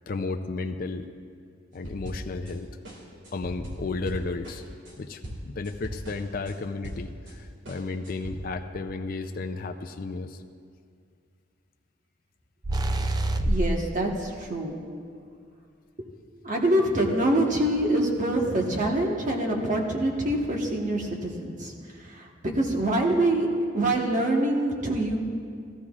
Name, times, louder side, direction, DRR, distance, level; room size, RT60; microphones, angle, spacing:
voice 1, 0.1-1.1 1.7-2.7 3.3-4.6 5.0-10.4, left 3 dB, 45° left, 6 dB, 0.4 m, -33 dB
sound 1, 1.8-2.6 2.8-7.3 7.7-8.3, equal, 65° right, 1.9 m, -39 dB
sound 2, 12.6-13.9, right 1 dB, 20° right, 0.3 m, -25 dB
voice 2, 13.4-14.8 16.4-21.7 22.0-23.5 23.7-25.2, right 1 dB, 40° right, 1 dB, 1.3 m, -25 dB
17.0 x 13.5 x 2.4 m, 2.3 s
head